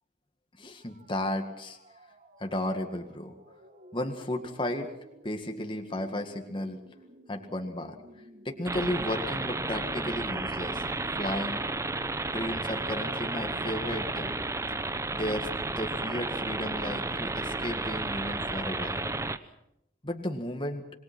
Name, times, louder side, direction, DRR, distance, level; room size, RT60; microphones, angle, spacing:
voice 1, 0.6-1.8 2.4-3.3 3.9-4.9 5.2-6.8 7.3-8.0 8.4-10.8 11.2-11.6 12.3-14.3 15.1-15.5 15.8-19.1 20.0-20.8, left 1 dB, 25° left, 4 dB, 1.9 m, -34 dB
sound 1, 0.7-12.5, equal, 40° right, 1.7 m, -54 dB
sound 2, 8.7-19.4, right 2 dB, 15° right, 0.8 m, -32 dB
27.0 x 21.5 x 6.1 m, 0.82 s
head